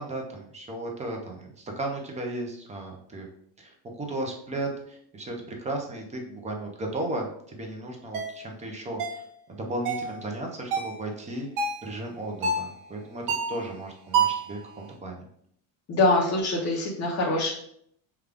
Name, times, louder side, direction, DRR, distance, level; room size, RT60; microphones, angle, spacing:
voice 1, 0.0-3.3 3.6-13.2 13.5-15.2, right 2 dB, 15° right, 2 dB, 0.4 m, -35 dB
sound 1, 8.1-8.3 9.0-9.2 9.8-10.1 10.7-11.0 11.6-11.9 12.4-12.7 13.3-13.6 14.1-14.5, right 5 dB, 70° right, 1.1 m, -27 dB
voice 2, 15.9-17.5, left 2 dB, 30° left, -4 dB, 0.7 m, -24 dB
5.1 x 2.3 x 3.4 m, 0.68 s
cardioid pair, 155°, 50 cm